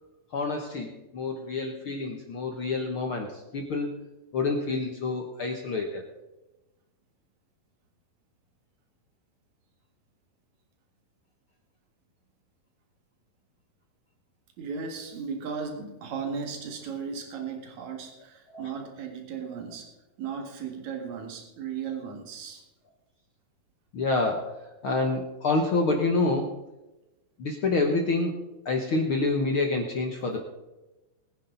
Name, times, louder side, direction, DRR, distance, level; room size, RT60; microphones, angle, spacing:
voice 1, 0.3-4.0 4.3-6.0 18.5-18.7 23.9-24.5 24.8-26.5 27.4-28.4 28.6-30.4, left 3 dB, 65° left, 2 dB, 1.3 m, -27 dB
voice 2, 14.6-19.9 20.2-22.6, right 6 dB, 55° right, 3 dB, 3.1 m, -36 dB
21.0 x 9.9 x 4.0 m, 1.0 s
omnidirectional pair, 4.1 m